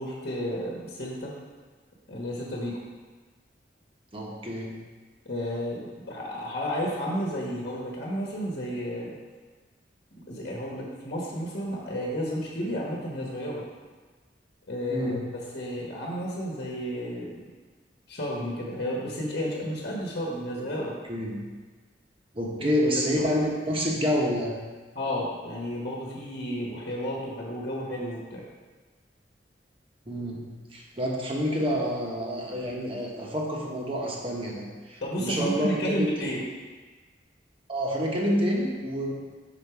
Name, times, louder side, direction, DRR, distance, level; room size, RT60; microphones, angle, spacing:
voice 1, 0.0-1.3 2.1-2.8 5.2-9.1 10.3-13.6 14.7-15.2 15.5-17.3 18.1-20.9 22.6-23.3 24.9-28.4 35.0-36.4, equal, 60° left, -3 dB, 1.2 m, -32 dB
voice 2, 4.1-4.8 14.9-15.3 20.6-20.8 21.1-21.4 22.3-24.5 30.1-36.3 37.7-39.1, equal, 30° right, -2 dB, 1.1 m, -28 dB
5.8 x 4.6 x 4.7 m, 1.4 s
head